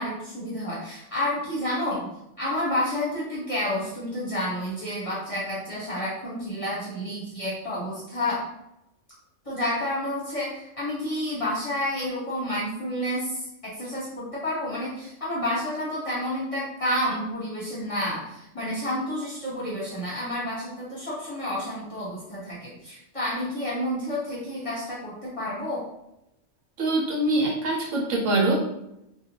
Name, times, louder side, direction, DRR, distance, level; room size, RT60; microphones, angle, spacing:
voice 1, 0.0-8.4 9.4-25.8, left 1 dB, 30° left, -7 dB, 0.8 m, -30 dB
voice 2, 26.8-28.5, right 2 dB, 75° right, -2 dB, 1.1 m, -24 dB
2.6 x 2.2 x 2.9 m, 0.85 s
omnidirectional pair, 1.3 m